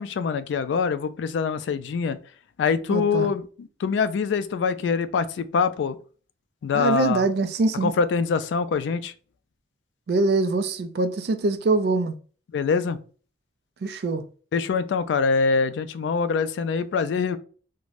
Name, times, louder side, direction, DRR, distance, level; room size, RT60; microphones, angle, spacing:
voice 1, 0.0-2.2 2.6-6.0 6.6-7.3 7.8-9.1 12.5-13.0 14.5-17.4, left 5 dB, 85° left, 0.3 m, -24 dB
voice 2, 2.9-3.3 6.7-7.9 10.1-12.1 13.8-14.2, right 3 dB, 60° right, 0.3 m, -23 dB
2.5 x 2.1 x 3.1 m
head